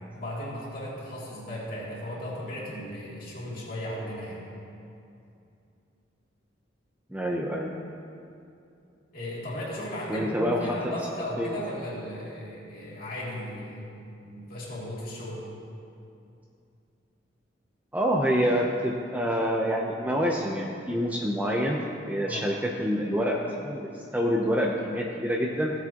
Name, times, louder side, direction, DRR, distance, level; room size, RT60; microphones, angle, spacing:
voice 1, 0.1-4.4 9.1-13.9 14.2-15.5 22.2-22.5, equal, 50° left, -7 dB, 2.6 m, -36 dB
voice 2, 7.1-7.7 10.1-10.9 11.4-11.6 17.9-21.8 22.1-25.7, equal, 10° right, -1 dB, 0.6 m, -27 dB
15.5 x 8.0 x 2.9 m, 2.6 s
head